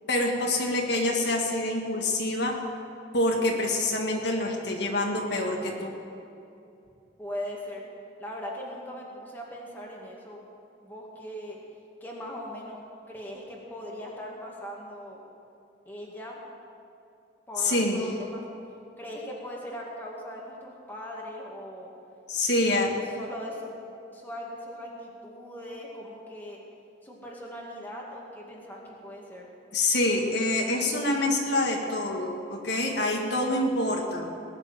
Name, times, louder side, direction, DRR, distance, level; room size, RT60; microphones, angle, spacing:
voice 1, 0.1-2.5 3.1-5.9 17.6-18.1 22.3-22.9 29.7-34.3, left 1 dB, 60° left, 0 dB, 1.7 m, -26 dB
voice 2, 7.2-7.8 8.2-10.4 10.8-11.6 12.0-12.8 13.1-15.2 15.9-16.4 17.5-18.4 19.0-21.9 22.6-26.6 27.0-29.5, equal, 10° left, -3 dB, 2.1 m, -40 dB
19.5 x 6.7 x 9.0 m, 2.7 s
head